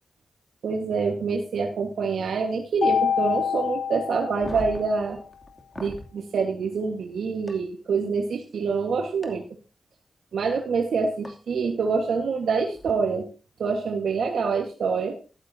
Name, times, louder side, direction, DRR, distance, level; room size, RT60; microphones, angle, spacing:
voice 1, 0.6-5.2 5.8-9.4 10.3-13.3 13.6-15.2, right 5 dB, 85° right, 2 dB, 1.5 m, -26 dB
Mallet percussion, 2.8-5.1, left 7 dB, 70° left, 0.9 m, -26 dB
sound 1, 4.3-6.1 7.5-7.6 9.2-9.3 11.2-11.3 12.7-12.9, left 1 dB, 25° left, 2.7 m, -39 dB
13.5 x 13.0 x 2.8 m, 0.34 s
cardioid pair, 65°, 0 cm